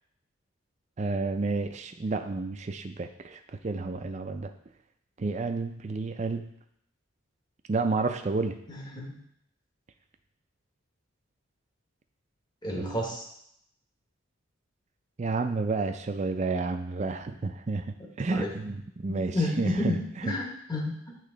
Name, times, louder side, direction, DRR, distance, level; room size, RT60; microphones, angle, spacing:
voice 1, 1.0-4.5 5.2-6.5 7.7-8.6 12.7-13.0 15.2-20.0, right 3 dB, 35° right, 7 dB, 0.4 m, -30 dB
voice 2, 8.7-9.1 12.6-13.2 18.3-18.5 19.1-20.0 20.2-21.2, left 1 dB, 20° left, -1 dB, 1.0 m, -30 dB
8.2 x 3.1 x 3.8 m, 0.74 s
head